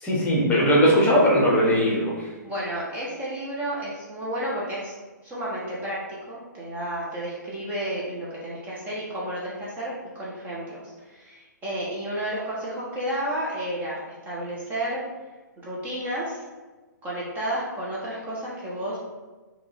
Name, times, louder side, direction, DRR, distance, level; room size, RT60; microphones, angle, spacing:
voice 1, 0.0-2.3, equal, 15° left, -4 dB, 0.9 m, -19 dB
voice 2, 2.4-4.9 5.2-6.0 6.3-15.0 15.6-16.4 17.0-19.0, right 1 dB, 15° right, -7 dB, 0.7 m, -31 dB
3.4 x 2.3 x 3.3 m, 1.3 s
figure-of-eight pair, 125°, 10 cm